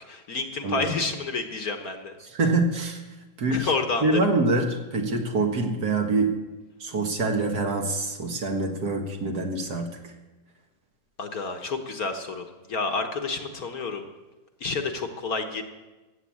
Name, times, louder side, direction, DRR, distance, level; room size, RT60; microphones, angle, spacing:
voice 1, 0.1-2.1 3.5-4.2 11.2-14.1 14.6-15.6, left 4 dB, 55° left, 5 dB, 1.5 m, -29 dB
voice 2, 0.6-0.9 2.2-3.0 3.4-3.7 4.0-6.3 6.8-10.0, right 2 dB, 55° right, 3 dB, 2.1 m, -25 dB
15.0 x 9.1 x 8.4 m, 1.2 s
omnidirectional pair, 2.1 m